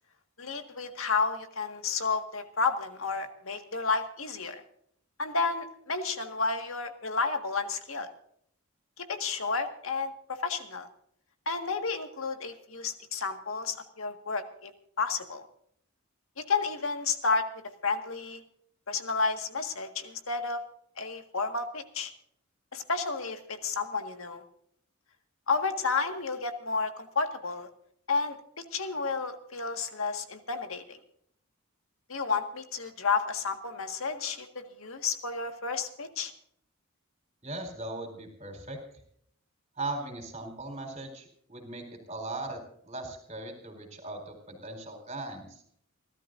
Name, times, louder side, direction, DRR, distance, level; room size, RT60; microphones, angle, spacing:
voice 1, 0.4-4.6 5.2-8.1 9.0-10.9 11.4-14.7 15.0-15.4 16.4-17.5 17.8-18.4 18.9-20.6 21.0-22.1 22.7-24.4 25.5-27.7 28.1-31.0 32.1-36.3, left 4 dB, 70° left, 6 dB, 1.8 m, -31 dB
voice 2, 37.4-38.8 39.8-45.6, right 2 dB, 30° right, 3 dB, 4.2 m, -39 dB
29.0 x 13.0 x 2.6 m, 0.67 s
head